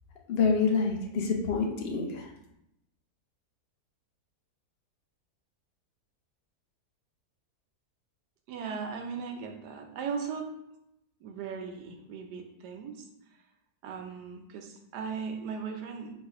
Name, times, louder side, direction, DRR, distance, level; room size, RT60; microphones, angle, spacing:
voice 1, 0.3-2.3, left 5 dB, 70° left, 1 dB, 0.5 m, -27 dB
voice 2, 8.5-10.5 11.2-13.0 13.8-16.1, right 6 dB, 85° right, 4 dB, 1.2 m, -38 dB
4.2 x 2.4 x 4.7 m, 0.83 s
omnidirectional pair, 1.7 m